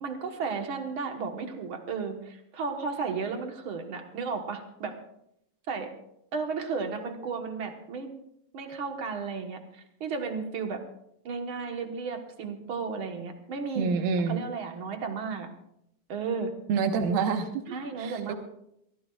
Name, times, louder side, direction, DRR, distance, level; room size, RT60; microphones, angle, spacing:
voice 1, 0.0-4.9 5.7-5.9 6.3-8.1 8.5-10.8 11.2-13.9 14.3-15.5 16.1-16.5 17.7-18.3, right 5 dB, 60° right, 4 dB, 1.4 m, -34 dB
voice 2, 13.8-14.4 16.7-17.5 18.0-18.3, right 5 dB, 85° right, 5 dB, 3.0 m, -26 dB
24.0 x 15.5 x 2.4 m, 0.76 s
omnidirectional pair, 4.1 m